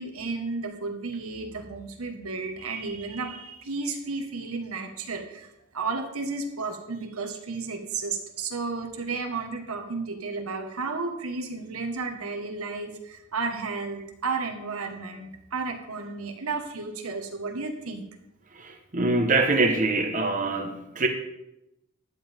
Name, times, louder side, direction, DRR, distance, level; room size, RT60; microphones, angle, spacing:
voice 1, 0.0-5.5 5.7-18.0, right 4 dB, 90° right, 4 dB, 1.6 m, -33 dB
voice 2, 18.6-21.1, right 3 dB, 40° right, 4 dB, 1.1 m, -24 dB
13.0 x 9.5 x 3.6 m, 0.86 s
head